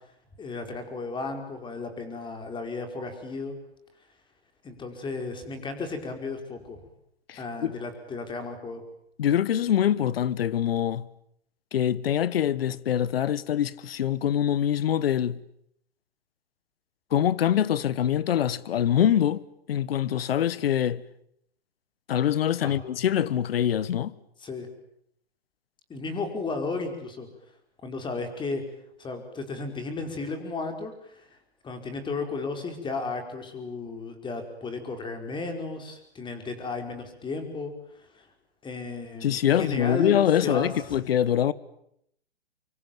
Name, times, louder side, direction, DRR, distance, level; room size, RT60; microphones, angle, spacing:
voice 1, 0.4-3.5 4.6-6.8 7.4-8.8 22.6-22.8 24.4-24.7 25.9-27.3 27.8-28.6 29.0-31.4 31.6-38.3 38.6-40.7, left 3 dB, 15° left, 5.0 m, -34 dB
voice 2, 7.3-7.8 9.2-11.1 11.7-15.4 17.1-19.4 19.7-21.0 22.1-24.1 39.2-41.5, left 10 dB, 65° left, 1.4 m, -24 dB
25.5 x 24.5 x 9.3 m
hypercardioid pair, 125°, 32 cm